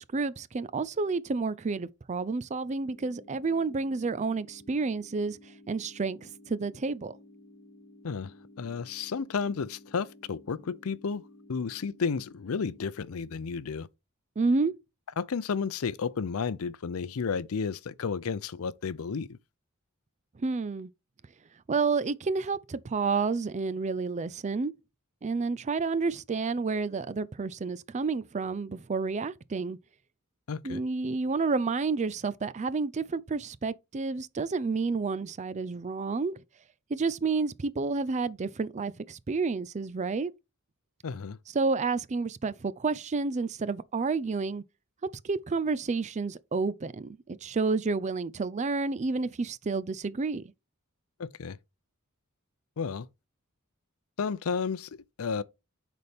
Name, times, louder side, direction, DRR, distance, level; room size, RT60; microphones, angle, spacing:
voice 1, 0.0-5.4 5.7-7.1 14.4-14.7 20.4-20.9 21.7-24.7 25.2-29.8 30.6-36.4 36.9-40.3 41.5-44.6 45.2-50.4, right 4 dB, 30° right, 0.4 m, -30 dB
sound 1, 2.8-12.8, left 1 dB, 35° left, 2.1 m, -54 dB
voice 2, 8.6-11.2 11.5-13.9 15.2-19.4 30.5-30.8 41.0-41.4 51.2-51.6 52.8-53.1 54.2-54.9 55.2-55.4, left 5 dB, 70° left, 0.5 m, -32 dB
10.5 x 4.2 x 3.5 m
head